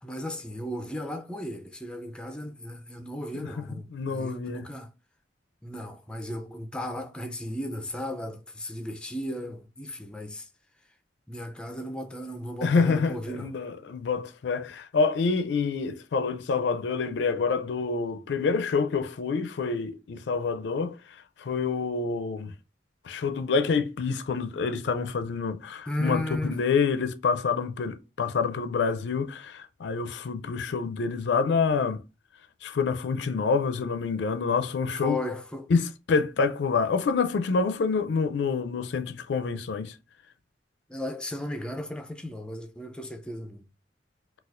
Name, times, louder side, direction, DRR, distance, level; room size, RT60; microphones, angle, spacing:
voice 1, 0.0-4.9 5.6-10.5 11.3-13.6 25.9-26.6 34.9-35.7 40.9-43.6, left 1 dB, 5° left, 0.4 m, -35 dB
voice 2, 3.9-4.6 12.6-21.0 21.4-22.5 23.0-26.2 26.5-32.0 32.6-35.2 35.7-39.9, left 5 dB, 70° left, 0.4 m, -27 dB
4.1 x 2.3 x 2.5 m
head